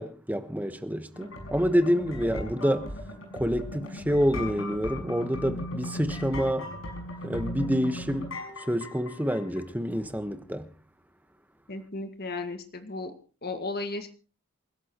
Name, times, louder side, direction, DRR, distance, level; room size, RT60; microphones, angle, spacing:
voice 1, 0.0-2.9 3.3-6.7 7.2-10.7, equal, 10° right, 1.3 m, -28 dB
sound 1, 1.1-9.6, left 1 dB, 75° left, 6.0 m, -38 dB
voice 2, 11.7-13.1 13.4-14.1, left 3 dB, 50° left, 2.0 m, -34 dB
28.0 x 12.0 x 3.1 m
head